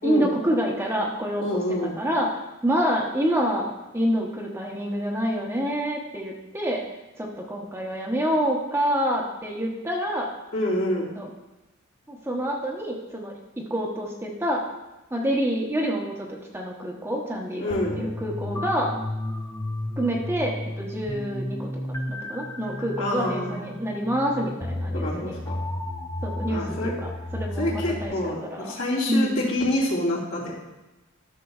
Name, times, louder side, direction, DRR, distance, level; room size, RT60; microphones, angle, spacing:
voice 1, 0.0-6.8 7.2-10.3 11.2-11.3 12.1-14.6 15.1-18.9 20.0-21.7 22.1-25.4 26.2-28.8 29.1-29.5, equal, 10° right, -1 dB, 0.8 m, -27 dB
voice 2, 1.4-1.9 10.5-11.1 17.5-18.0 23.0-23.7 24.9-25.6 26.5-26.9 27.6-30.5, left 1 dB, 70° left, -4 dB, 3.0 m, -27 dB
sound 1, 17.7-28.1, left 1 dB, 15° left, 0.5 m, -32 dB
13.0 x 6.5 x 2.4 m, 1.0 s
head